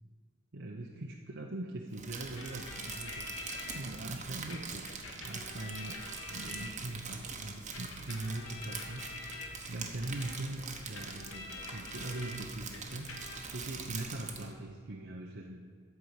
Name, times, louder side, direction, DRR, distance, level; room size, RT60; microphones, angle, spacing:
voice 1, 0.5-6.0 6.3-13.2 13.5-15.6, right 2 dB, 55° right, -1 dB, 0.9 m, -41 dB
Crumpling crinkling, 1.9-14.5, right 5 dB, 35° right, 1.2 m, -44 dB
sound 1, 2.4-3.8 4.5-7.1 7.7-12.4 12.7-13.6, left 3 dB, 70° left, 1.8 m, -46 dB
13.5 x 4.8 x 8.3 m, 2.1 s
head